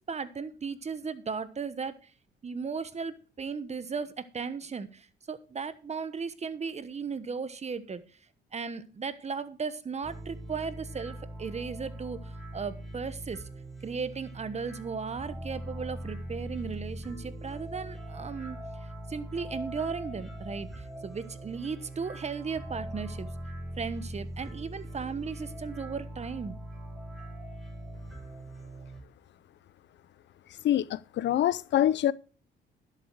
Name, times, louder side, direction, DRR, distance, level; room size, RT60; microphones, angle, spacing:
voice 1, 0.1-2.1 2.4-8.0 8.5-13.4 13.8-18.6 19.1-23.3 23.8-26.6, right 5 dB, 35° right, 1.1 m, -36 dB
sound 1, 10.0-29.0, right 1 dB, ahead, 5.8 m, -41 dB
voice 2, 30.6-32.1, left 12 dB, 65° left, 0.5 m, -25 dB
11.5 x 7.6 x 4.7 m
cardioid pair, 90°, 20 cm